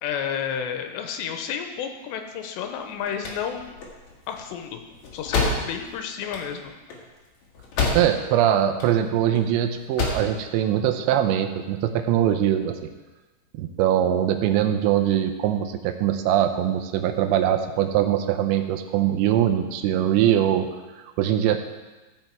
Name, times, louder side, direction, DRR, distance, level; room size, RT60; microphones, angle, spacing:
voice 1, 0.0-3.8 4.3-4.8 5.1-6.7, left 8 dB, 85° left, 5 dB, 2.9 m, -31 dB
sound 1, 2.8-8.4 8.6-9.4 9.8-10.3, left 3 dB, 55° left, 2.2 m, -28 dB
voice 2, 7.9-12.7 13.6-20.7 21.2-21.6, right 11 dB, 85° right, 7 dB, 3.0 m, -22 dB
15.0 x 5.5 x 4.5 m, 1.2 s
omnidirectional pair, 5.1 m